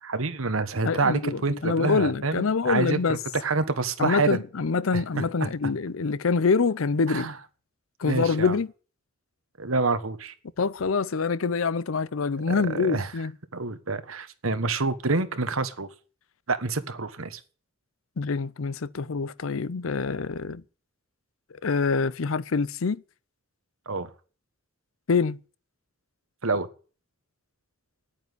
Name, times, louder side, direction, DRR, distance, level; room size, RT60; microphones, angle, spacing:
voice 1, 0.0-4.4 4.9-5.5 7.1-7.3 8.0-8.6 9.6-10.3 12.5-13.1 13.5-15.9 16.5-17.4 23.9-24.1 26.4-26.7, right 3 dB, 85° right, 1.4 m, -27 dB
voice 2, 0.8-3.2 4.0-7.3 8.0-8.7 10.6-13.3 18.2-20.6 21.6-23.0 25.1-25.4, left 4 dB, 75° left, 0.6 m, -25 dB
9.7 x 8.9 x 9.6 m
head